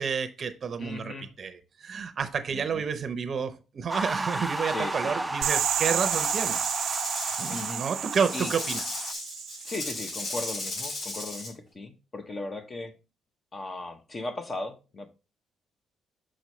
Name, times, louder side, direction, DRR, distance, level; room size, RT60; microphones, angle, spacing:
voice 1, 0.0-6.6 7.4-8.8, right 6 dB, 50° right, 0.7 m, -30 dB
voice 2, 0.8-1.3 2.5-2.8 4.7-5.3 7.5-7.8 8.3-8.5 9.6-12.9 13.5-15.1, left 2 dB, 35° left, 0.9 m, -37 dB
sound 1, 3.9-9.1, right 2 dB, 10° right, 0.4 m, -34 dB
sound 2, 5.4-10.2, right 11 dB, 85° right, 0.6 m, -31 dB
Rattle / Rattle (instrument), 6.0-11.5, left 2 dB, 65° left, 4.1 m, -36 dB
6.2 x 6.1 x 3.1 m
cardioid pair, 90°, 0 cm